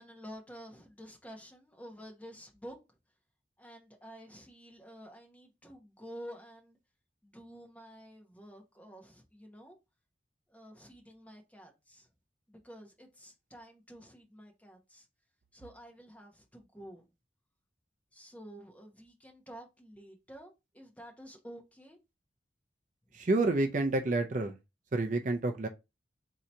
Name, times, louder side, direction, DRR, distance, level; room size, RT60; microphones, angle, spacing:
voice 1, 0.0-2.8 3.6-6.8 7.2-9.8 10.5-12.1 12.5-15.1 15.5-17.1 18.1-22.0 23.1-23.3, equal, 10° left, 0.9 m, -50 dB
voice 2, 23.1-24.6 24.9-25.7, right 2 dB, 45° right, 0.5 m, -29 dB
3.8 x 2.8 x 4.4 m
head